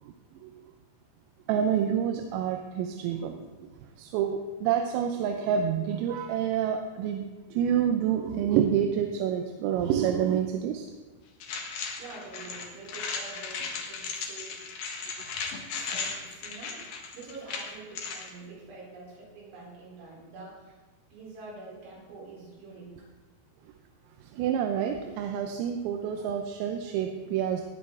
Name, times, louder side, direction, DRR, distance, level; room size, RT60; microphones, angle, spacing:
voice 1, 1.5-3.7 4.0-10.9 24.3-27.6, right 8 dB, 85° right, 5 dB, 3.5 m, -28 dB
sound 1, 11.4-18.3, left 5 dB, 65° left, 2.5 m, -36 dB
voice 2, 12.0-14.7 15.7-20.8 21.1-23.1, right 3 dB, 65° right, -4 dB, 6.2 m, -46 dB
19.0 x 10.0 x 3.7 m, 1.2 s
omnidirectional pair, 5.9 m